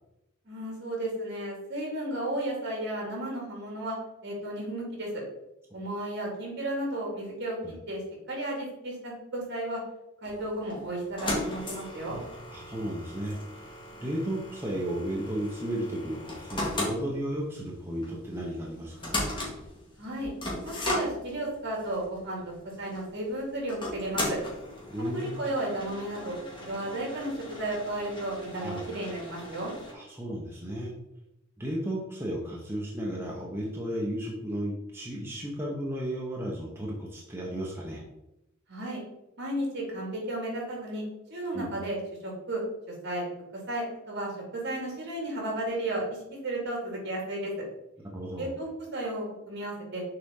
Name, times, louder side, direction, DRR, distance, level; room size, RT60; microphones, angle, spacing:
voice 1, 0.4-4.0 4.2-5.1 5.7-7.6 7.9-8.0 8.3-9.8 10.2-12.2 20.0-20.3 20.6-24.4 25.1-26.4 26.6-29.7 38.7-39.0 39.4-41.0 41.3-43.3 43.7-47.5 48.4-50.0, right 1 dB, 55° right, -1 dB, 2.4 m, -33 dB
sound 1, 10.2-29.9, left 1 dB, 25° left, 1.8 m, -37 dB
voice 2, 12.5-19.2 24.9-25.4 28.5-28.8 29.9-30.9 31.6-38.0 41.5-41.7 48.1-48.5, right 1 dB, 10° right, -3 dB, 0.9 m, -34 dB
6.7 x 4.2 x 3.8 m, 0.89 s
head